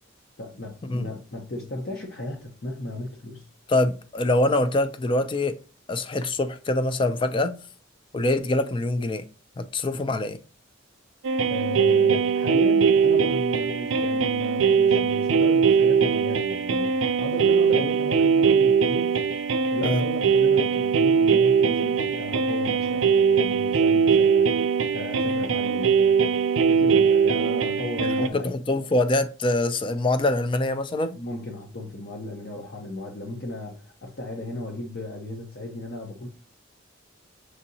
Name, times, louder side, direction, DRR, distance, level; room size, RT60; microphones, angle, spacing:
voice 1, 0.4-3.4 11.5-19.1 19.7-24.7 24.9-26.3 26.6-28.5 31.1-36.3, left 1 dB, 50° left, 0.7 m, -35 dB
voice 2, 3.7-5.5 5.9-7.6 8.1-9.2 9.6-10.4 19.8-20.0 28.2-31.2, left 2 dB, 25° left, 0.4 m, -24 dB
sound 1, 11.2-28.3, right 6 dB, 80° right, 0.4 m, -21 dB
6.2 x 2.7 x 2.7 m
head